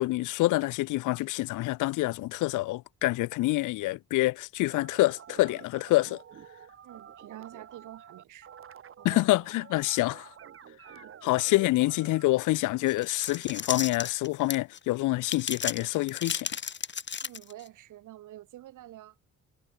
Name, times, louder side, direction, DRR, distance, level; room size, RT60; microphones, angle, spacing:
voice 1, 0.0-6.2 9.0-10.3 11.2-16.5, left 19 dB, 85° left, 0.6 m, -27 dB
sound 1, 4.7-12.3, right 8 dB, 45° right, 1.1 m, -49 dB
voice 2, 6.8-8.5 9.0-9.2 10.9-11.1 17.2-19.2, right 14 dB, 85° right, 7.5 m, -47 dB
sound 2, 12.9-14.8 15.2-17.7, left 7 dB, 35° left, 1.5 m, -34 dB
cardioid pair, 90°, 30 cm